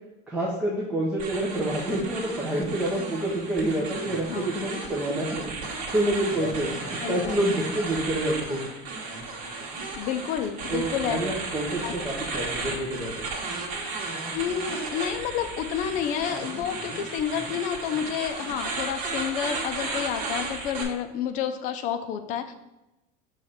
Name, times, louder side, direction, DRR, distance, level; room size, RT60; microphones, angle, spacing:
voice 1, 0.3-8.6 10.7-13.2, right 1 dB, 5° right, -6 dB, 0.8 m, -28 dB
sound 1, 1.2-20.8, right 3 dB, 65° right, 1.7 m, -34 dB
voice 2, 4.3-4.6 6.4-6.5 7.0-7.4 10.0-11.2 11.8-11.9 14.3-22.5, left 9 dB, 40° left, 7 dB, 0.6 m, -30 dB
6.4 x 3.2 x 5.6 m, 0.96 s
cardioid pair, 175°, 20 cm